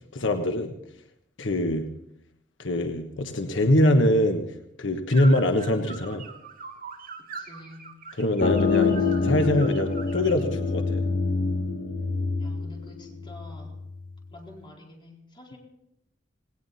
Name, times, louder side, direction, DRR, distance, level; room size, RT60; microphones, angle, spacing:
voice 1, 0.1-0.7 1.4-1.9 2.6-4.4 4.8-6.3 8.2-8.9 9.2-11.0, left 1 dB, 85° left, 6 dB, 1.3 m, -23 dB
sound 1, 5.1-10.4, right 5 dB, 50° right, 2.1 m, -42 dB
voice 2, 7.2-7.9 8.8-9.3 12.4-13.7 14.3-15.6, left 2 dB, 25° left, -1 dB, 4.3 m, -48 dB
sound 2, 8.4-13.8, left 4 dB, 50° left, 1.1 m, -26 dB
18.5 x 18.5 x 4.2 m, 0.79 s
head